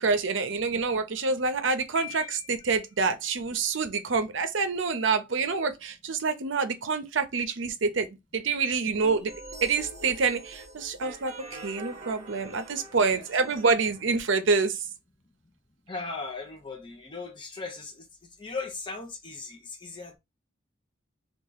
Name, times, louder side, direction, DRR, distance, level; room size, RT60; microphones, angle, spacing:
voice 1, 0.0-8.1 8.3-9.3 9.6-14.7, right 4 dB, 75° right, 0.6 m, -27 dB
Piano, 2.0-2.9, left 10 dB, 50° left, 1.1 m, -42 dB
sound 1, 9.0-14.0, right 2 dB, 35° right, 0.9 m, -44 dB
voice 2, 13.1-13.7 15.9-18.1 18.4-20.2, left 3 dB, 25° left, 0.8 m, -38 dB
2.9 x 2.4 x 3.9 m
head